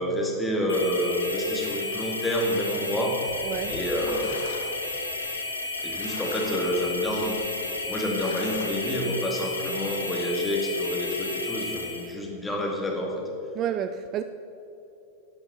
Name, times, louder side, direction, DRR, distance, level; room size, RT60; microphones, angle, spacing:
voice 1, 0.0-4.4 5.8-7.4 7.9-13.2, equal, 10° left, 2.1 m, -28 dB
sound 1, 0.7-12.1, left 2 dB, 80° left, 1.2 m, -33 dB
sound 2, 3.3-8.7, left 6 dB, 60° left, 1.0 m, -43 dB
voice 2, 3.4-3.8 13.6-14.2, right 9 dB, 35° right, 0.4 m, -30 dB
11.5 x 7.0 x 6.8 m
figure-of-eight pair, 90°, 0 cm